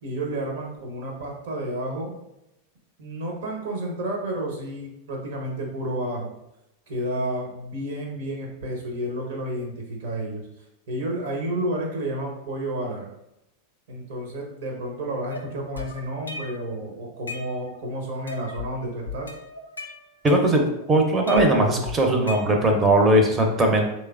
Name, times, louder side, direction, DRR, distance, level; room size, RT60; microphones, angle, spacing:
voice 1, 0.0-2.1 3.0-6.3 6.9-13.1 13.9-19.3, right 1 dB, 65° right, 0 dB, 0.9 m, -31 dB
sound 1, 15.3-16.7 17.1-17.9 18.3-18.7 19.1-20.8 21.3-22.9, left 3 dB, 85° left, 0.4 m, -37 dB
voice 2, 20.2-20.6 20.9-23.9, right 1 dB, 20° right, 2 dB, 0.6 m, -19 dB
3.3 x 3.1 x 2.4 m, 0.87 s
figure-of-eight pair, 90°, 0 cm